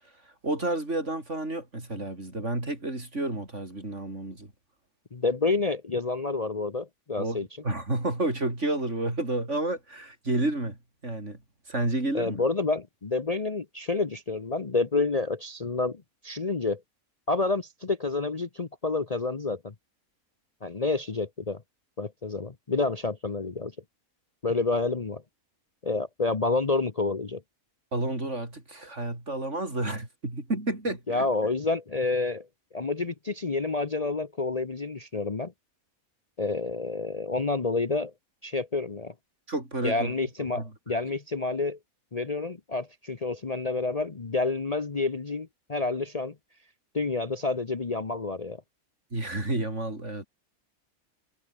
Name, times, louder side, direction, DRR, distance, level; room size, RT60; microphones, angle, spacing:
voice 1, 0.4-4.5 7.2-10.8 11.0-11.4 11.7-12.4 27.9-31.3 39.5-40.1 40.5-40.7 49.1-50.3, right 2 dB, 55° right, 6.1 m, -30 dB
voice 2, 5.1-7.5 12.1-16.8 17.3-19.7 20.6-21.6 22.0-23.7 24.4-25.2 25.8-27.4 31.1-32.5 32.7-35.5 36.4-38.1 38.4-39.1 39.8-41.8 42.1-46.3 46.9-48.6, left 3 dB, 30° left, 1.0 m, -29 dB
omnidirectional pair, 1.5 m